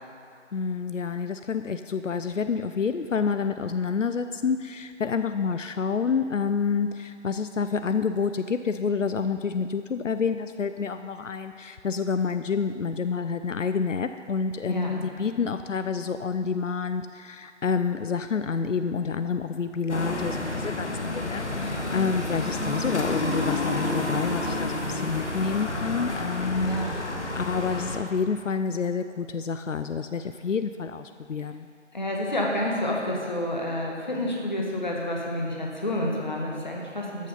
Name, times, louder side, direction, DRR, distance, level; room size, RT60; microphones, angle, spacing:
voice 1, 0.5-31.7, left 5 dB, 90° left, 9 dB, 0.6 m, -28 dB
voice 2, 14.7-15.1 26.6-27.0 31.9-37.3, left 1 dB, 40° left, -1 dB, 1.7 m, -29 dB
sound 1, 19.9-28.0, left 2 dB, 70° left, 1.7 m, -30 dB
13.5 x 6.5 x 5.5 m, 2.4 s
figure-of-eight pair, 170°, 37 cm